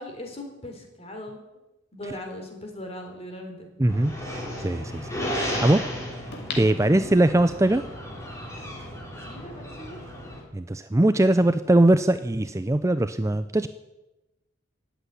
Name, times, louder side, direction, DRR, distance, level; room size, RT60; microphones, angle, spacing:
voice 1, 0.0-1.6 1.9-3.7 6.9-7.1 9.2-10.0, left 1 dB, 30° left, 3 dB, 3.5 m, -39 dB
sound 1, 2.7-2.8 6.3-7.6 8.1-8.2, left 4 dB, 60° left, 2.6 m, -38 dB
voice 2, 3.8-5.9 6.6-7.8 10.5-13.7, right 1 dB, 15° right, 11 dB, 0.5 m, -21 dB
sound 2, 3.9-10.4, equal, 15° left, 4.1 m, -34 dB
17.5 x 8.2 x 9.9 m, 1.0 s
head